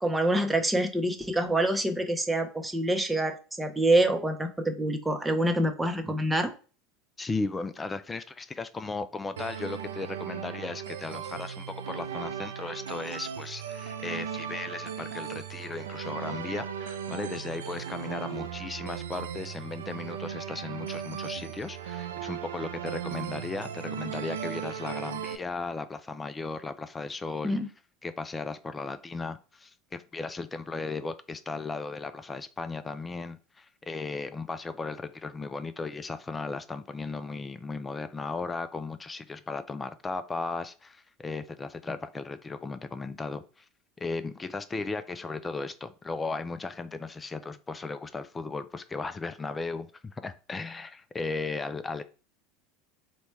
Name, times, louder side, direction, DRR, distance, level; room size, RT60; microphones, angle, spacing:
voice 1, 0.0-6.5 27.4-27.7, right 1 dB, 10° right, 0.7 m, -26 dB
voice 2, 7.2-27.6 28.0-43.7 44.0-52.0, left 3 dB, 20° left, 0.3 m, -36 dB
sound 1, 9.4-25.4, right 8 dB, 85° right, 0.3 m, -37 dB
4.0 x 2.2 x 3.1 m
hypercardioid pair, 85°, 0 cm